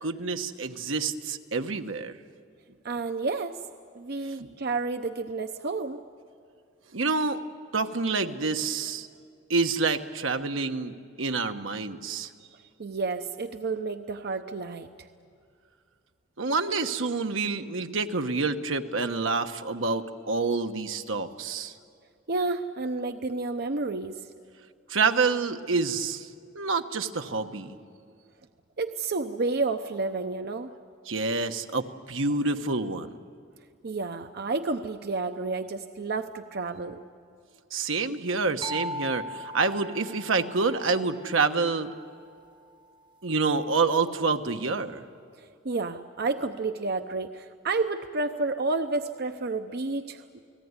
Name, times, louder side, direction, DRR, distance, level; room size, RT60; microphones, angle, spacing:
voice 1, 0.0-2.2 4.3-4.5 6.9-7.4 7.7-9.1 9.5-12.3 16.4-21.7 24.9-26.3 26.5-27.8 31.1-33.1 37.7-41.9 43.2-45.0, right 4 dB, 80° right, 6 dB, 1.2 m, -27 dB
voice 2, 2.8-3.6 3.9-6.0 12.8-14.9 22.3-24.3 28.8-30.7 33.8-37.0 45.3-50.4, right 3 dB, 55° right, 8 dB, 0.8 m, -30 dB
sound 1, 38.6-42.3, equal, 25° right, 0.6 m, -39 dB
29.5 x 19.0 x 9.7 m, 2.4 s
head